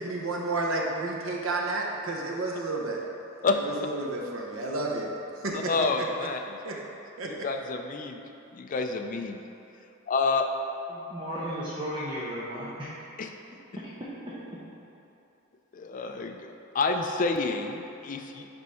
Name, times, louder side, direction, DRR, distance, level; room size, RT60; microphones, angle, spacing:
voice 1, 0.0-3.0 3.6-5.2 5.4-6.3 6.6-6.8 7.2-7.5, right 2 dB, 80° right, 0 dB, 0.9 m, -31 dB
voice 2, 5.5-6.6 7.3-8.2 8.5-9.4 10.1-10.5 13.2-13.3 15.7-18.5, left 3 dB, 40° left, 5 dB, 0.4 m, -29 dB
voice 3, 10.9-12.9 14.0-14.6, equal, 25° right, -10 dB, 0.9 m, -35 dB
5.3 x 4.6 x 5.5 m, 2.8 s
head